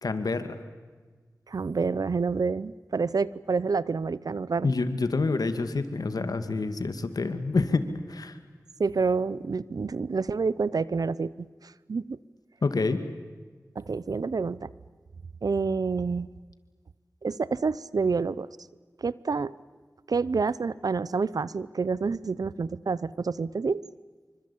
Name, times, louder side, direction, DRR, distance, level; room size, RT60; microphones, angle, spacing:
voice 1, 0.0-0.6 4.6-7.8 8.1-8.4 12.6-13.0, left 3 dB, 85° left, 10 dB, 2.2 m, -27 dB
voice 2, 1.5-4.7 8.8-11.3 11.6-12.2 13.8-14.7 15.4-16.3 17.2-18.5 19.0-19.5 20.1-23.8, right 4 dB, 80° right, 19 dB, 0.7 m, -28 dB
26.5 x 25.0 x 8.6 m, 1.4 s
wide cardioid pair, 60°, 6 cm